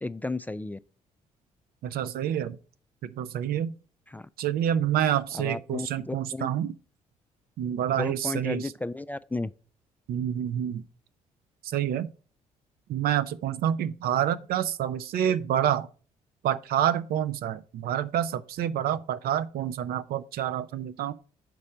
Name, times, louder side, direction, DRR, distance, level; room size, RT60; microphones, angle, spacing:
voice 1, 0.0-0.8 4.1-4.3 5.3-6.5 8.0-9.5, left 2 dB, 10° left, 0.3 m, -33 dB
voice 2, 1.8-2.6 3.0-3.7 4.4-6.7 7.6-8.7 10.1-10.8 11.6-12.1 12.9-15.9 16.4-21.1, right 10 dB, 65° right, 0.5 m, -28 dB
6.0 x 4.2 x 6.3 m
hypercardioid pair, 45°, 17 cm